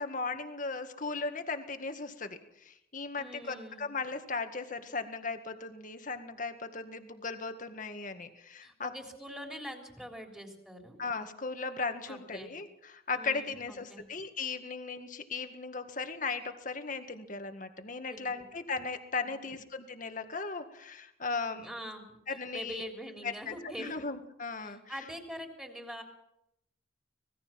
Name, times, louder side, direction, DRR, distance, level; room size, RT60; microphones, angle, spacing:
voice 1, 0.0-8.9 11.0-21.7 22.3-22.9 23.2-24.8, left 4 dB, 45° left, 7 dB, 1.9 m, -37 dB
voice 2, 3.2-3.9 8.6-11.0 12.1-12.5 13.1-14.0 18.1-18.4 19.2-19.5 21.4-24.0 24.6-26.0, equal, 5° right, 2 dB, 3.6 m, -44 dB
25.5 x 20.0 x 5.9 m, 0.80 s
head